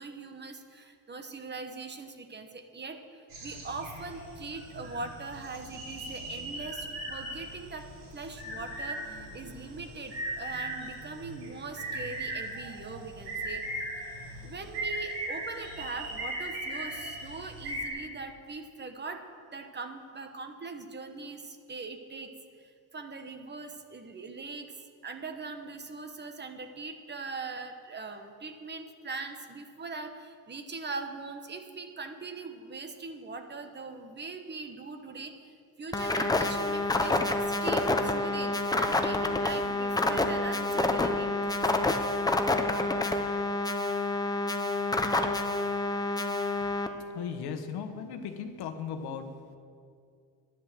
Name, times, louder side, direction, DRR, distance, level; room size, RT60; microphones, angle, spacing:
voice 1, 0.0-7.9 8.1-13.6 14.4-19.2 19.5-22.3 22.6-24.8 25.0-41.9, right 4 dB, 25° right, 6 dB, 1.1 m, -41 dB
sound 1, 3.3-17.9, right 1 dB, 80° right, 3.9 m, -38 dB
sound 2, 35.9-46.9, left 2 dB, 10° left, 0.8 m, -28 dB
voice 2, 47.1-49.6, left 7 dB, 70° left, 7 dB, 1.2 m, -37 dB
10.0 x 9.9 x 7.5 m, 2.3 s
cardioid pair, 115°, 39 cm